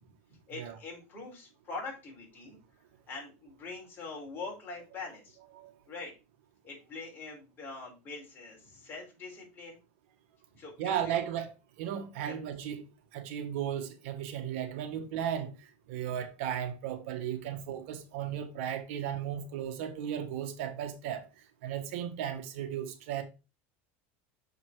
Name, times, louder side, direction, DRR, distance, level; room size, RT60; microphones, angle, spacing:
voice 1, 0.3-2.6 3.1-5.4 5.9-6.1 6.6-9.8 10.5-11.2 12.3-12.4 18.3-18.4, left 3 dB, 30° left, 4.5 m, -43 dB
voice 2, 10.8-11.5 11.8-12.8 13.1-15.5 15.9-21.3 21.6-23.2, right 9 dB, 70° right, 1.5 m, -35 dB
6.8 x 5.7 x 4.6 m
supercardioid pair, 140°, 7 cm